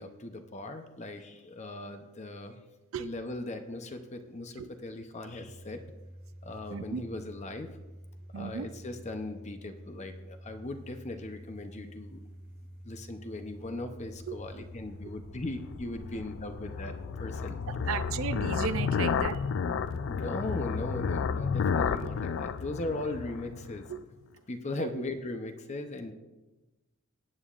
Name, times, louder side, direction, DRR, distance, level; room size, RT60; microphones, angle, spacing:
voice 1, 0.0-2.6 3.0-5.8 6.4-7.7 8.3-12.2 12.8-16.9 17.2-17.5 20.1-23.8 24.5-26.1, left 2 dB, 35° left, 6 dB, 0.7 m, -38 dB
Domestic sounds home sounds, 5.2-22.2, equal, 55° right, 1.2 m, -49 dB
voice 2, 6.7-7.0 8.3-8.8 14.3-14.4 17.7-19.4 23.9-24.0 24.8-25.0, right 6 dB, 75° right, 12 dB, 0.4 m, -35 dB
sound 1, 14.4-24.0, left 6 dB, 60° left, 0.4 m, -32 dB
18.5 x 8.7 x 2.5 m, 1.1 s
head